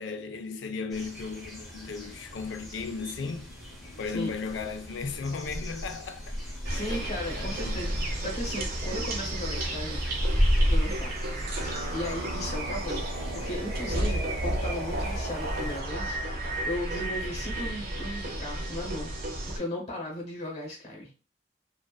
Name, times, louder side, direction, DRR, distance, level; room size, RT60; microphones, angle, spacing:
voice 1, 0.0-3.5 4.0-6.4 7.3-8.0, left 4 dB, 85° left, 0.4 m, -36 dB
sound 1, 0.9-15.8, equal, ahead, 0.6 m, -33 dB
sound 2, 6.6-19.6, right 1 dB, 55° right, 0.5 m, -32 dB
voice 2, 6.7-10.1 10.7-11.1 11.6-19.1 19.5-21.1, left 1 dB, 35° left, 0.8 m, -36 dB
2.4 x 2.3 x 2.2 m
head